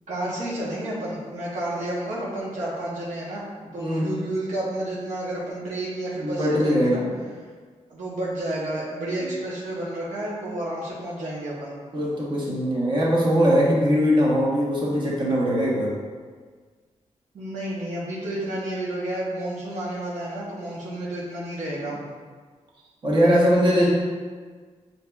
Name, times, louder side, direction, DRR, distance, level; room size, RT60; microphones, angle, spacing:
voice 1, 0.1-3.4 3.7-7.0 7.9-11.7 17.3-21.9, right 1 dB, 85° right, -7 dB, 0.9 m, -31 dB
voice 2, 3.8-4.1 6.2-7.1 9.2-9.3 11.9-15.9 23.0-23.9, equal, 40° right, -5 dB, 1.0 m, -21 dB
6.4 x 2.8 x 2.3 m, 1.5 s
wide cardioid pair, 170°, 12 cm